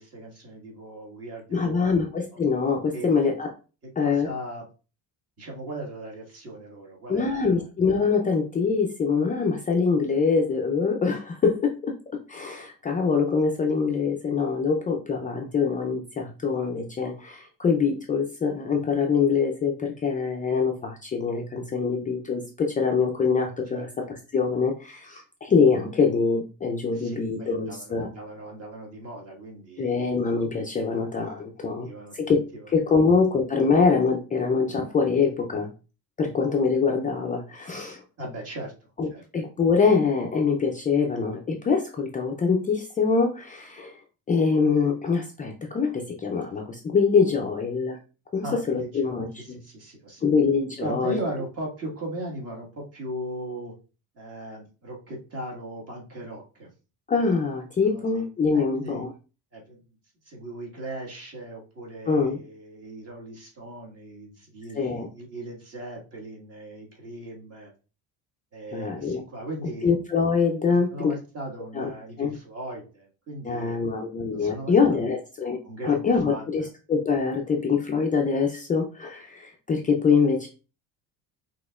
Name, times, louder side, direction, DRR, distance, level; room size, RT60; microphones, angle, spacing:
voice 1, 0.0-2.0 2.3-2.4 2.9-3.1 4.0-4.6 5.4-7.6 23.7-23.9 26.9-30.1 31.6-32.3 32.5-33.0 38.2-38.7 39.1-39.2 48.4-50.3 50.8-53.7 54.1-56.7 57.8-58.2 58.5-59.0 59.5-59.8 60.2-67.7 68.5-69.9 70.6-73.9 74.3-75.1 75.6-76.7, right 1 dB, 40° right, -1 dB, 1.7 m, -38 dB
voice 2, 1.5-3.5 4.0-4.3 7.1-12.0 12.3-28.1 29.8-31.9 32.1-35.7 36.2-38.0 39.0-39.1 39.3-44.0 44.3-48.0 48.3-49.3 50.2-51.2 57.1-59.1 62.1-62.4 64.7-65.1 68.7-69.2 69.8-71.1 71.7-71.9 72.2-72.3 73.4-75.6 75.8-80.5, left 5 dB, 20° left, 1 dB, 0.4 m, -24 dB
6.1 x 2.9 x 2.4 m, 0.34 s
cardioid pair, 140°, 39 cm